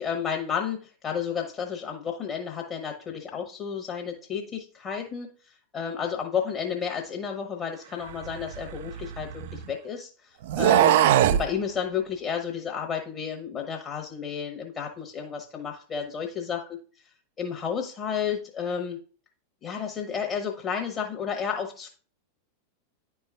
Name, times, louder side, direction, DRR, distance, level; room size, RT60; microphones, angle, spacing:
voice 1, 0.0-10.9 11.3-16.6 17.4-19.0 19.6-21.9, left 7 dB, 30° left, 1 dB, 1.1 m, -32 dB
sound 1, 8.2-9.7 10.4-11.5, right 11 dB, 55° right, 0.3 m, -21 dB
10.5 x 4.5 x 2.4 m, 0.39 s
figure-of-eight pair, 90°, 0 cm